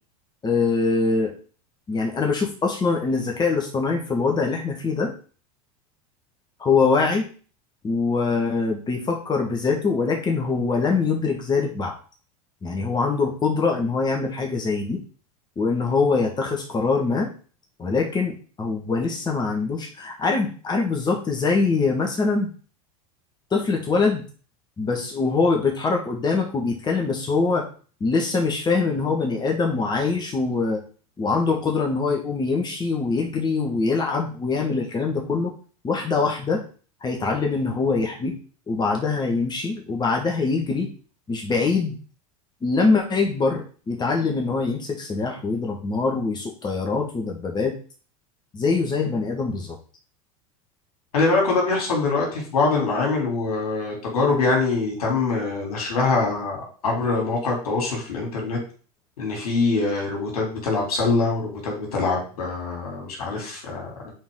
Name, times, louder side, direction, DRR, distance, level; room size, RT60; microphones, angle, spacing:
voice 1, 0.4-1.3 1.9-5.1 6.6-7.3 7.8-11.9 12.6-15.0 15.6-17.3 17.8-22.5 23.5-24.2 24.8-27.7 28.0-30.8 31.2-35.5 35.8-36.6 37.0-38.3 38.7-40.9 41.3-42.0 42.6-47.8 48.5-49.8, left 4 dB, 25° left, 1 dB, 1.7 m, -23 dB
voice 2, 51.1-56.6 56.8-58.6 59.2-64.1, left 3 dB, 75° left, 0 dB, 3.3 m, -24 dB
7.2 x 4.3 x 3.8 m, 0.39 s
hypercardioid pair, 90°, 19 cm